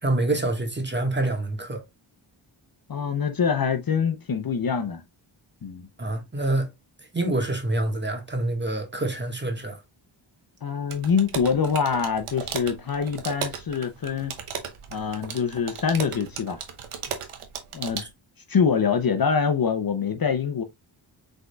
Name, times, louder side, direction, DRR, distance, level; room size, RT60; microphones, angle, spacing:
voice 1, 0.0-1.8 6.0-6.7 7.0-9.8 18.0-18.1, right 2 dB, 20° right, 1.5 m, -26 dB
voice 2, 2.9-5.0 5.6-5.9 10.6-14.3 14.9-16.6 17.7-18.1 18.5-20.6, left 6 dB, 45° left, 0.7 m, -25 dB
sound 1, 10.9-18.1, right 7 dB, 85° right, 1.0 m, -36 dB
5.1 x 3.8 x 2.3 m
cardioid pair, 65°, 49 cm